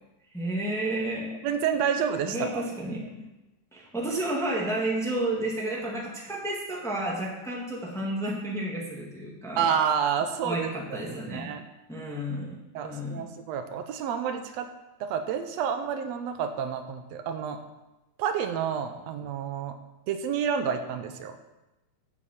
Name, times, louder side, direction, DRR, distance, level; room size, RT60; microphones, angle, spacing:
voice 1, 0.3-1.4 2.2-3.3 3.7-9.6 10.4-11.5 11.9-13.3, right 1 dB, ahead, -3 dB, 0.6 m, -31 dB
voice 2, 1.4-2.6 9.6-11.7 12.7-14.7 15.0-17.6 18.2-19.8 20.1-21.4, right 7 dB, 75° right, 7 dB, 1.6 m, -29 dB
8.4 x 7.1 x 7.2 m, 1.0 s
omnidirectional pair, 3.8 m